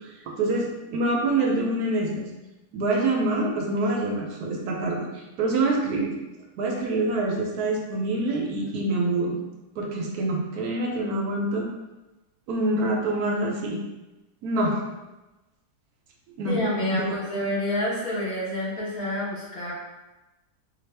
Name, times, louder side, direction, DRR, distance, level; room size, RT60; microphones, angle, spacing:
voice 1, 0.4-2.3 2.7-6.1 6.6-9.4 9.8-11.7 12.5-13.8 14.4-14.8 16.4-16.6 16.9-17.1, right 2 dB, 75° right, 0 dB, 1.1 m, -26 dB
voice 2, 16.4-19.7, left 1 dB, 45° left, -7 dB, 1.1 m, -28 dB
4.1 x 2.4 x 3.2 m, 1.1 s
omnidirectional pair, 1.7 m